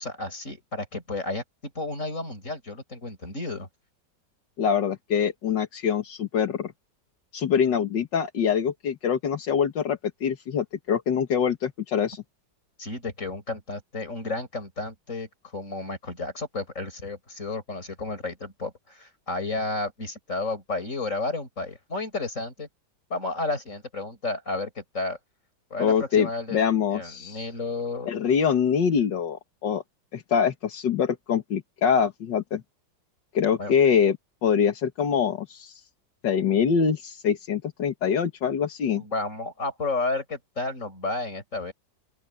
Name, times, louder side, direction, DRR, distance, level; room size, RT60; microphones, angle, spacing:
voice 1, 0.0-3.7 12.8-22.7 23.1-25.2 25.7-26.6 26.9-28.1 33.6-33.8 39.0-41.7, left 3 dB, 45° left, 6.7 m, -32 dB
voice 2, 4.6-6.7 7.3-12.2 25.8-27.4 28.1-29.8 30.1-32.6 33.3-35.8 36.2-39.0, left 7 dB, 80° left, 2.1 m, -24 dB
open air
omnidirectional pair, 1.9 m